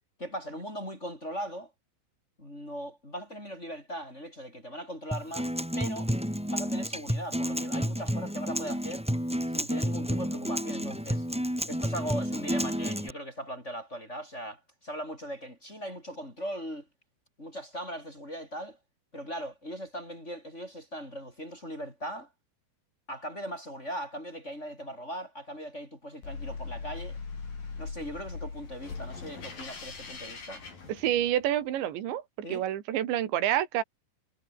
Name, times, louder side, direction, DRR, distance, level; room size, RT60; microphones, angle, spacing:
voice 1, 0.2-1.7 2.4-6.1 6.5-9.0 9.5-11.3 11.7-16.9 17.4-18.8 19.1-22.3 23.1-27.2 27.8-30.6 32.4-32.7, equal, 15° left, 7.4 m, -39 dB
Acoustic guitar, 5.1-13.1, equal, ahead, 6.6 m, -30 dB
sound 1, 26.2-31.5, left 4 dB, 50° left, 8.0 m, -40 dB
voice 2, 31.0-32.2 32.5-33.8, right 12 dB, 80° right, 4.4 m, -28 dB
omnidirectional pair, 5.2 m